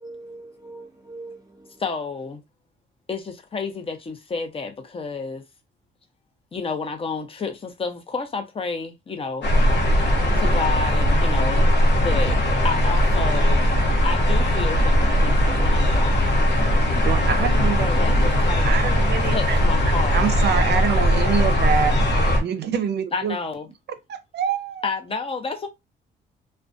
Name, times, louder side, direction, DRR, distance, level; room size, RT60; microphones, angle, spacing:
voice 1, 0.0-1.8 10.2-10.6 17.0-17.4, right 1 dB, 20° right, 1.0 m, -41 dB
voice 2, 1.8-2.4 3.1-5.4 6.5-9.5 10.3-11.7 12.0-12.4 12.6-13.7 14.0-16.5 17.8-18.7 19.2-20.3 23.1-23.7 24.8-25.7, left 4 dB, 30° left, 0.6 m, -30 dB
sound 1, 9.4-22.4, equal, 65° left, 0.8 m, -19 dB
voice 3, 17.0-17.9 18.6-19.6 20.1-23.4 24.1-24.9, right 7 dB, 60° right, 0.5 m, -25 dB
2.4 x 2.2 x 2.5 m
cardioid pair, 90°, 20 cm